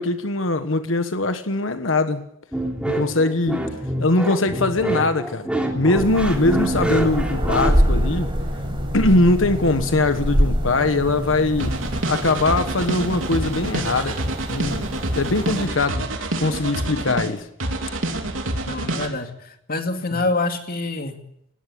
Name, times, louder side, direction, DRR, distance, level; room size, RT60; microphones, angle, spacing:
voice 1, 0.0-2.2 2.9-3.7 4.0-5.5 5.7-8.3 8.9-11.8 12.1-14.2 14.5-17.5 20.1-20.2, left 2 dB, 80° left, 1.4 m, -21 dB
sound 1, 2.5-7.7, right 1 dB, 5° right, 3.3 m, -26 dB
sound 2, 5.9-15.7, equal, 25° right, 4.9 m, -25 dB
sound 3, 11.6-17.3 17.6-19.1, right 1 dB, 85° right, 3.3 m, -27 dB
voice 2, 18.6-21.2, left 2 dB, 50° left, 2.4 m, -26 dB
19.5 x 16.5 x 8.6 m
head